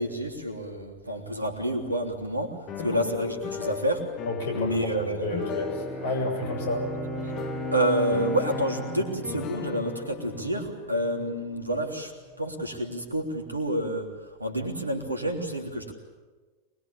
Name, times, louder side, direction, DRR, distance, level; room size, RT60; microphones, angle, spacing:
voice 1, 0.0-4.1 4.5-5.5 7.7-15.9, right 1 dB, 85° right, 3 dB, 3.3 m, -29 dB
sound 1, 2.7-12.6, left 7 dB, 35° left, 1.7 m, -38 dB
voice 2, 4.3-6.8, left 2 dB, 55° left, 3 dB, 7.1 m, -31 dB
Bowed string instrument, 5.2-10.7, right 2 dB, 15° right, 5.8 m, -37 dB
24.5 x 22.0 x 8.8 m, 1.3 s
figure-of-eight pair, 90°, 0 cm